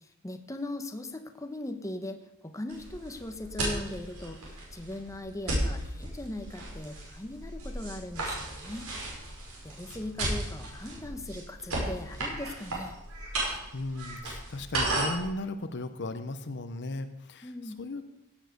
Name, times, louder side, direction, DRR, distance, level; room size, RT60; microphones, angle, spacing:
voice 1, 0.0-8.9 9.6-12.9 17.4-17.8, left 1 dB, 15° left, 6 dB, 1.0 m, -39 dB
sound 1, 2.7-15.3, right 1 dB, 70° right, 5.4 m, -35 dB
voice 2, 13.7-18.0, left 2 dB, 50° left, 9 dB, 0.8 m, -36 dB
16.5 x 7.4 x 6.7 m, 0.89 s
head